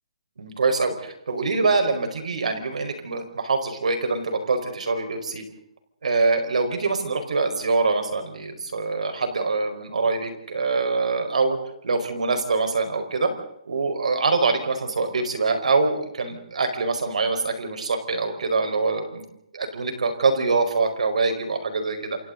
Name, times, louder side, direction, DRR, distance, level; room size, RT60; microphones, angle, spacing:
voice 1, 0.4-5.4 6.0-11.6 11.8-13.3 13.7-19.2 19.5-22.2, right 3 dB, 75° right, 6 dB, 4.9 m, -24 dB
28.5 x 28.0 x 4.0 m, 0.76 s
hypercardioid pair, 175°, 4 cm